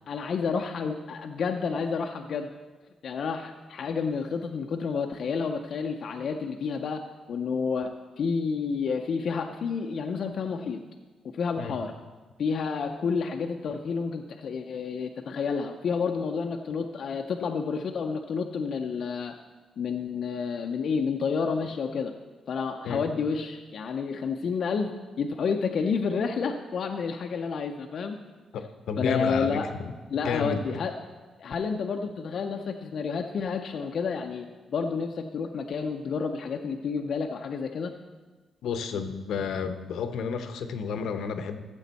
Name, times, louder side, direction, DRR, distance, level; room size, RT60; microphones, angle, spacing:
voice 1, 0.1-2.5 3.0-7.0 7.3-7.9 8.2-10.8 11.4-11.9 12.4-19.3 19.8-22.1 22.5-24.9 25.2-28.2 29.0-29.7 30.1-30.9 31.4-37.9, left 5 dB, 50° left, 3 dB, 0.5 m, -30 dB
voice 2, 28.5-29.9 30.2-30.6 38.6-41.6, left 6 dB, 75° left, 9 dB, 0.8 m, -31 dB
13.5 x 7.1 x 4.1 m, 1.3 s
cardioid pair, 155°, 0 cm